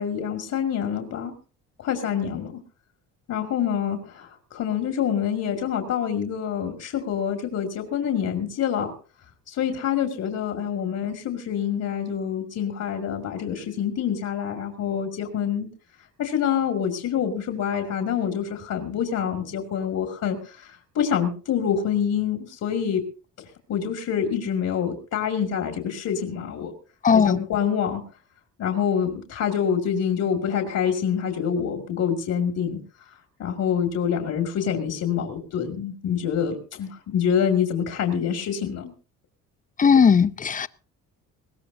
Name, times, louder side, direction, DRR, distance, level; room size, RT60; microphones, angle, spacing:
voice 1, 0.0-1.3 1.8-2.5 3.3-8.9 9.5-15.7 16.2-23.0 23.7-26.7 27.1-28.0 28.6-32.8 33.4-38.9, left 8 dB, 65° left, 2.5 m, -26 dB
voice 2, 27.0-27.4 39.8-40.7, left 6 dB, 25° left, 0.6 m, -17 dB
21.0 x 16.5 x 2.8 m
cardioid pair, 105°, 31 cm